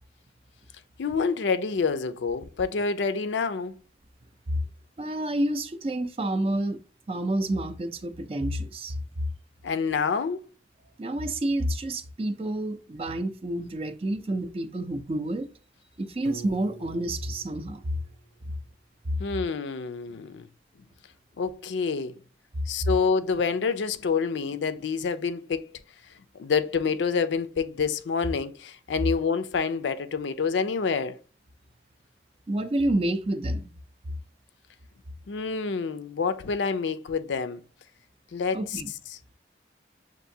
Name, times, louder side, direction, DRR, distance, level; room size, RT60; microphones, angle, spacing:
voice 1, 1.0-3.7 9.6-10.4 19.2-20.5 21.4-22.2 22.7-25.7 26.3-31.2 35.3-37.6 38.3-38.8, left 5 dB, 85° left, 0.4 m, -27 dB
voice 2, 5.0-6.8 7.1-9.0 11.0-15.5 16.0-17.8 19.1-19.2 32.5-33.7 38.5-38.9, right 1 dB, 30° right, 0.4 m, -29 dB
Piano, 16.2-19.2, right 3 dB, 80° right, 0.9 m, -47 dB
6.5 x 2.6 x 2.7 m
head